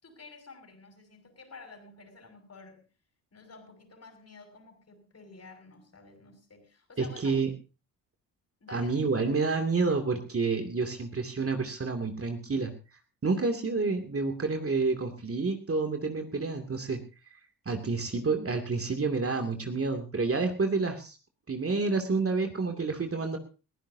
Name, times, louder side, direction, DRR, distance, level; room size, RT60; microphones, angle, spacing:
voice 1, 0.0-2.8 3.3-7.4 8.6-8.9, left 4 dB, 35° left, 6 dB, 6.2 m, -51 dB
voice 2, 7.0-7.5 8.7-12.7 13.2-17.0 17.7-21.2 21.5-23.4, right 4 dB, 30° right, 5 dB, 2.5 m, -29 dB
22.0 x 15.0 x 2.8 m, 0.32 s
hypercardioid pair, 55°, 46 cm